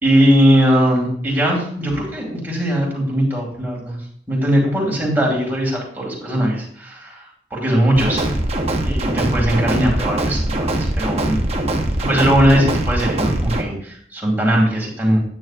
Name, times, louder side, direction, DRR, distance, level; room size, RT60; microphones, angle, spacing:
voice 1, 0.0-4.0 4.3-7.2 7.5-8.4 8.8-11.4 12.0-15.2, equal, 10° right, -3 dB, 2.3 m, -19 dB
sound 1, 7.9-13.6, right 1 dB, 35° right, 0.8 m, -22 dB
9.0 x 8.7 x 2.4 m, 0.63 s
head